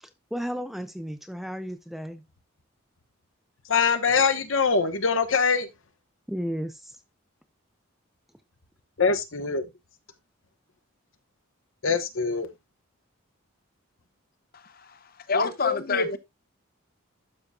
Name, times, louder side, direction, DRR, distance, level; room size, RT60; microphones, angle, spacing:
voice 1, 0.0-2.2 6.3-7.0, equal, ahead, 0.5 m, -34 dB
voice 2, 3.7-5.7 9.0-9.7 11.8-12.5 15.3-16.2, left 5 dB, 70° left, 1.1 m, -24 dB
voice 3, 14.5-15.0 15.3-16.2, left 5 dB, 45° left, 0.8 m, -28 dB
12.0 x 5.6 x 2.3 m
head